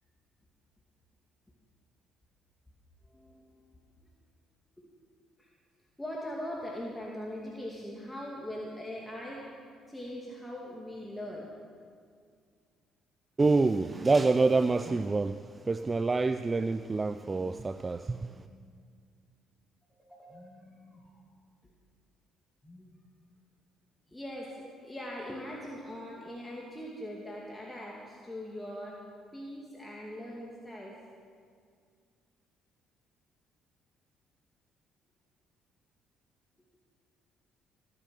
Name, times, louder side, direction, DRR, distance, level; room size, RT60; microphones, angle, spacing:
voice 1, 3.0-3.6 4.8-4.9 5.4-5.5 6.0-9.5 9.9-11.5 18.1-18.7 19.9-21.2 22.6-22.9 24.1-29.0 29.3-30.9, left 1 dB, 10° left, -3 dB, 2.4 m, -41 dB
voice 2, 13.4-18.5, right 3 dB, 30° right, 12 dB, 0.4 m, -27 dB
16.0 x 9.7 x 6.4 m, 2.1 s
hypercardioid pair, 55°, 0 cm